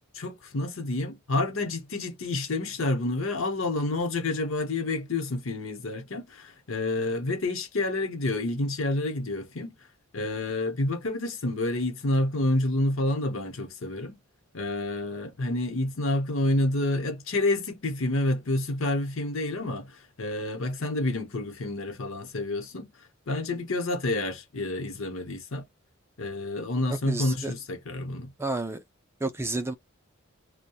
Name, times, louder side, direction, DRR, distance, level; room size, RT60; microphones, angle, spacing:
voice 1, 0.1-9.7 10.1-14.2 14.5-22.9 23.3-25.7 26.2-28.3, left 2 dB, 70° left, 0.9 m, -29 dB
voice 2, 26.9-27.5 28.4-28.8 29.2-29.7, right 2 dB, 10° right, 0.4 m, -30 dB
2.8 x 2.2 x 2.2 m
head